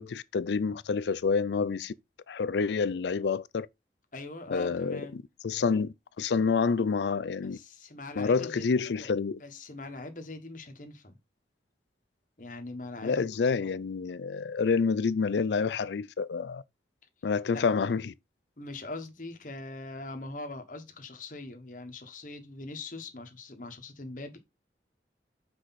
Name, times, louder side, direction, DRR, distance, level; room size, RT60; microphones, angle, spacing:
voice 1, 0.0-1.9 2.3-3.7 4.5-7.6 8.2-9.4 13.0-16.6 17.2-18.1, left 5 dB, 75° left, 0.4 m, -28 dB
voice 2, 4.1-5.2 7.4-8.6 9.0-9.1 9.4-11.2 12.4-13.5 17.5-17.6 18.6-24.4, left 2 dB, 45° left, 1.3 m, -42 dB
6.0 x 4.8 x 4.1 m
head